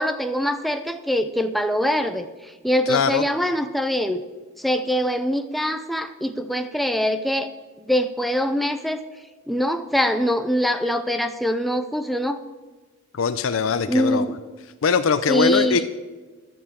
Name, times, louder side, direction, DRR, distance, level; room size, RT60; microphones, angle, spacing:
voice 1, 0.0-4.2 4.6-7.5 7.9-9.0 9.5-12.4 13.9-14.4 15.3-15.8, equal, ahead, 8 dB, 0.5 m, -23 dB
voice 2, 2.9-3.3 13.1-14.2 14.8-15.8, left 5 dB, 80° left, 9 dB, 0.5 m, -21 dB
13.5 x 7.0 x 7.0 m, 1.3 s
head